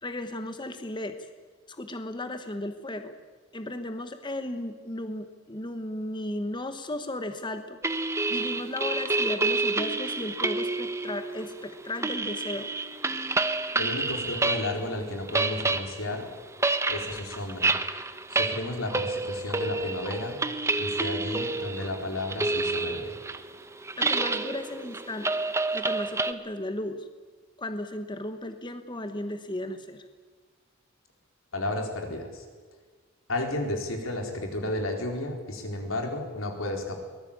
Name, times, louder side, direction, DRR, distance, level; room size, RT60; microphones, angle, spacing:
voice 1, 0.0-1.2 1.7-3.1 3.5-7.8 8.3-12.7 24.0-25.5 25.7-27.1 27.6-30.0, left 1 dB, 25° left, 8 dB, 1.2 m, -35 dB
sound 1, 7.8-14.9 15.1-26.3, right 3 dB, 15° right, 1.0 m, -29 dB
voice 2, 13.7-16.3 16.9-17.7 18.3-20.4 20.8-23.1 31.5-32.4 33.3-37.0, left 1 dB, 85° left, 3 dB, 4.2 m, -32 dB
23.5 x 19.0 x 8.8 m, 1.4 s
head